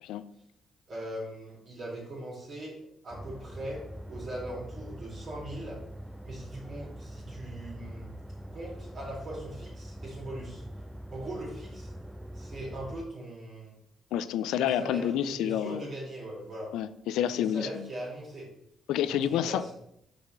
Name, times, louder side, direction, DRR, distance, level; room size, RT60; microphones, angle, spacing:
voice 1, 0.9-2.8 3.0-3.8 4.1-5.8 6.2-8.1 8.5-10.6 11.1-11.9 12.3-13.8 14.5-16.7 17.2-18.5 19.0-19.7, right 1 dB, 50° right, -6 dB, 2.5 m, -40 dB
sound 1, 3.1-13.1, equal, 5° right, 0.4 m, -43 dB
voice 2, 14.1-15.8 16.7-17.9 18.9-19.7, left 10 dB, 90° left, 14 dB, 0.4 m, -29 dB
5.4 x 4.2 x 5.7 m, 0.75 s
cardioid pair, 90°, 0 cm